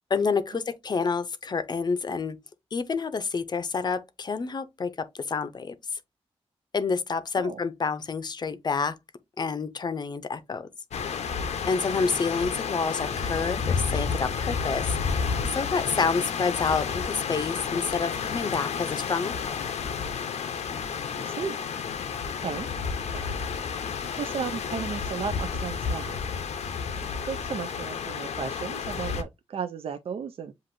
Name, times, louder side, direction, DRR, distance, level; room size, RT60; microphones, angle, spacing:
voice 1, 0.1-2.4 2.7-5.7 6.7-9.0 9.4-10.7 11.7-19.6, left 5 dB, 40° left, 0.6 m, -28 dB
sound 1, 10.9-29.2, left 6 dB, 90° left, 0.7 m, -31 dB
voice 2, 21.1-21.6 22.4-22.7 23.1-23.2 24.1-26.2 27.3-30.5, right 7 dB, 60° right, 0.4 m, -34 dB
7.6 x 2.5 x 2.5 m
wide cardioid pair, 130°, 11 cm